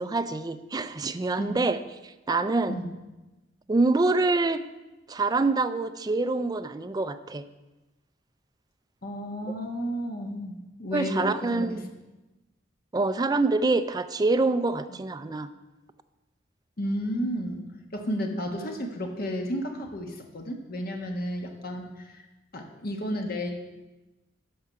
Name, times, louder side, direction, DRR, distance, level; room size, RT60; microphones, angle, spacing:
voice 1, 0.0-2.7 3.7-4.6 5.1-7.4 10.9-11.8 12.9-15.5, right 3 dB, 20° right, 10 dB, 0.4 m, -26 dB
voice 2, 9.0-11.8 14.9-15.0 16.8-22.2 22.5-23.5, equal, 55° left, 2 dB, 1.4 m, -32 dB
12.5 x 4.8 x 5.7 m, 1.1 s
head